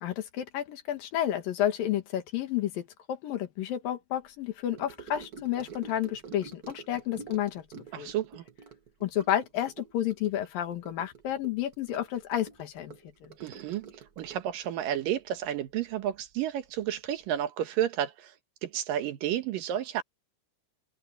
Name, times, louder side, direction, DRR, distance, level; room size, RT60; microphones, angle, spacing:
voice 1, 0.0-7.6 8.0-8.1 9.0-13.0, left 11 dB, 80° left, 3.4 m, -31 dB
Gurgling / Sink (filling or washing) / Trickle dribble, 4.7-16.4 16.6-17.0 17.2-17.3, right 5 dB, 55° right, 1.0 m, -49 dB
voice 2, 7.9-8.4 13.4-13.9 14.2-18.3 18.6-20.0, right 11 dB, 80° right, 3.0 m, -31 dB
omnidirectional pair, 4.0 m